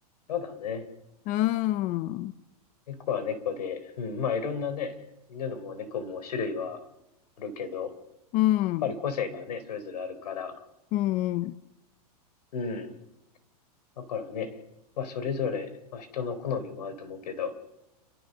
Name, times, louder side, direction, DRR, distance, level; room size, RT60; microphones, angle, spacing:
voice 1, 0.3-0.9 2.9-4.9 5.3-6.8 7.4-7.9 8.8-10.6 12.5-12.9 14.0-14.6 15.0-17.5, left 6 dB, 80° left, 10 dB, 4.0 m, -33 dB
voice 2, 1.3-2.3 8.3-8.9 10.9-11.5, left 15 dB, 40° left, 14 dB, 0.8 m, -26 dB
29.0 x 13.5 x 6.7 m, 0.94 s
hypercardioid pair, 130°, 20 cm